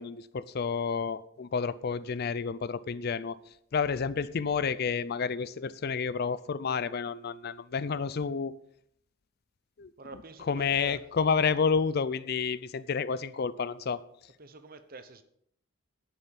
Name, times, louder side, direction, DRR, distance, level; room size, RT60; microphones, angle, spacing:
voice 1, 0.0-3.3 3.7-8.5 9.8-9.9 10.5-14.0, left 5 dB, 50° left, 17 dB, 0.4 m, -30 dB
voice 2, 10.0-11.1 14.4-15.2, right 3 dB, 45° right, 11 dB, 0.9 m, -47 dB
11.5 x 7.1 x 5.3 m, 0.70 s
head